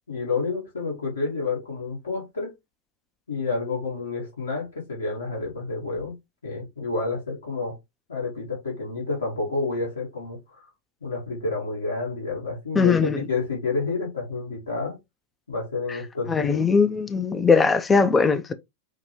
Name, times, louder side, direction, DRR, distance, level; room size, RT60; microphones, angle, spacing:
voice 1, 0.1-2.5 3.3-6.1 6.4-7.8 8.1-10.7 11.0-15.0 15.5-16.6, left 3 dB, 70° left, 1.9 m, -29 dB
voice 2, 12.8-13.2 16.3-18.5, left 5 dB, 15° left, 0.4 m, -20 dB
5.5 x 2.2 x 2.9 m
figure-of-eight pair, 90°, 0 cm